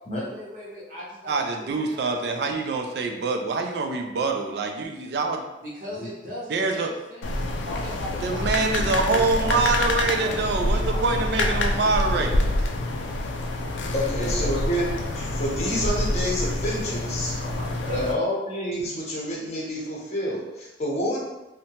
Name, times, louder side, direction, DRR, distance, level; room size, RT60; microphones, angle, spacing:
voice 1, 0.1-2.7 5.6-11.7 12.0-12.8 14.0-14.5 17.3-18.2, equal, 45° right, -7 dB, 0.7 m, -39 dB
voice 2, 1.3-5.4 6.5-6.9 8.2-12.4, right 3 dB, 65° right, 4 dB, 0.3 m, -25 dB
sound 1, 7.2-18.1, left 1 dB, 80° left, 0.4 m, -27 dB
voice 3, 13.9-17.3 17.9-21.2, equal, 35° left, -4 dB, 0.7 m, -28 dB
2.7 x 2.1 x 2.8 m, 1.0 s
head